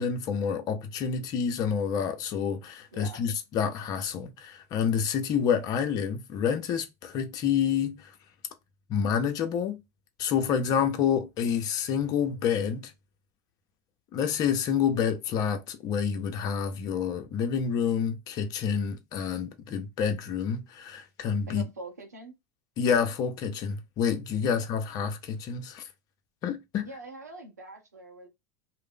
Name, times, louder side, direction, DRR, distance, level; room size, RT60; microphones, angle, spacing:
voice 1, 0.0-8.1 8.9-9.8 10.2-12.9 14.1-21.6 22.8-25.8 26.4-26.8, left 7 dB, 45° left, 0.6 m, -28 dB
voice 2, 2.9-3.3 21.5-22.3 26.8-28.3, right 2 dB, 90° right, 0.7 m, -44 dB
2.4 x 2.0 x 3.6 m
hypercardioid pair, 80°, 9 cm